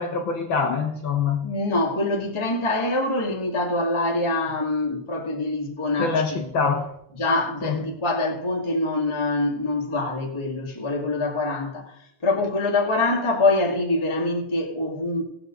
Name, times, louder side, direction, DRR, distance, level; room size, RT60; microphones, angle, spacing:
voice 1, 0.0-1.5 6.0-6.9 7.6-7.8, left 5 dB, 70° left, 1.1 m, -24 dB
voice 2, 1.4-6.8 7.1-15.2, left 2 dB, 10° left, 1.5 m, -25 dB
18.5 x 7.8 x 3.9 m
omnidirectional pair, 3.7 m